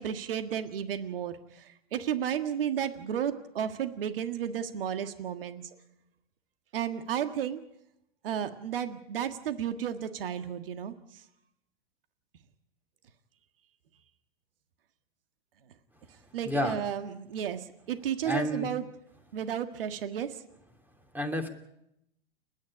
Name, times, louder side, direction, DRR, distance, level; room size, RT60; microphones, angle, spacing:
voice 1, 0.0-5.7 6.7-7.6 8.2-10.9 16.3-18.8 19.3-20.4, right 9 dB, 70° right, 9 dB, 1.7 m, -33 dB
voice 2, 16.4-16.8 18.2-18.7 21.1-21.5, equal, 5° right, 6 dB, 2.9 m, -29 dB
29.5 x 10.5 x 9.9 m, 0.82 s
hypercardioid pair, 100°, 29 cm